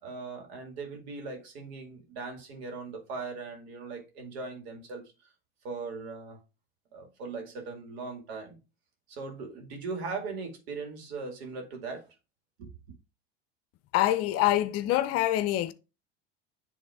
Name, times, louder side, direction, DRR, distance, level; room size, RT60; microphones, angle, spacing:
voice 1, 0.0-5.0 5.6-6.4 6.9-8.6 9.1-12.0 12.6-12.7, right 4 dB, 75° right, 2.3 m, -39 dB
voice 2, 13.9-15.7, left 14 dB, 50° left, 0.7 m, -25 dB
9.9 x 3.5 x 3.5 m
hypercardioid pair, 100°, 32 cm